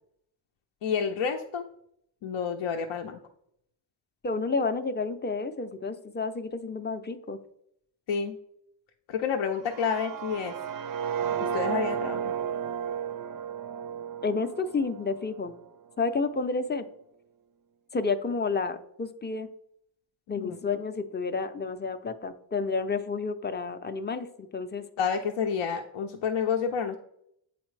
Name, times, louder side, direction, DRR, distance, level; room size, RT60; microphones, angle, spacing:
voice 1, 0.8-1.6 2.2-3.2 8.1-8.4 9.1-10.5 11.4-12.3 20.4-20.6 25.0-27.0, left 6 dB, 75° left, 3 dB, 0.6 m, -29 dB
voice 2, 4.2-7.4 14.2-15.5 16.0-16.9 17.9-19.5 20.3-24.8, left 4 dB, 25° left, 8 dB, 0.5 m, -30 dB
sound 1, 9.6-15.6, right 8 dB, 50° right, 0.5 m, -33 dB
8.0 x 4.2 x 3.2 m, 0.74 s
cardioid pair, 90°, 46 cm